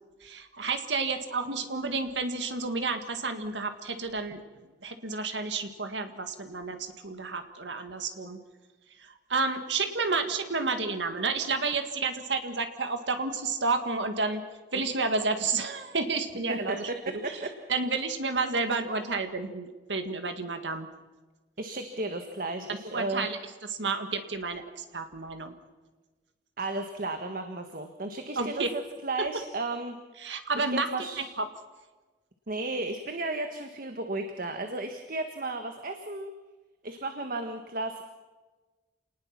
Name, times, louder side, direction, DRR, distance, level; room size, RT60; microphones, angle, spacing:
voice 1, 0.2-4.4 4.8-8.4 9.0-14.4 14.7-16.9 17.3-17.4 17.7-20.9 22.9-23.4 23.7-25.5 28.4-28.7 29.2-29.3 30.2-30.9 31.2-31.5, right 4 dB, 80° right, 7 dB, 2.0 m, -30 dB
voice 2, 21.6-23.3 26.6-30.0 30.6-31.3 32.5-36.3 36.8-38.0, right 2 dB, 50° right, 6 dB, 1.5 m, -34 dB
28.0 x 19.5 x 6.0 m, 1.2 s
head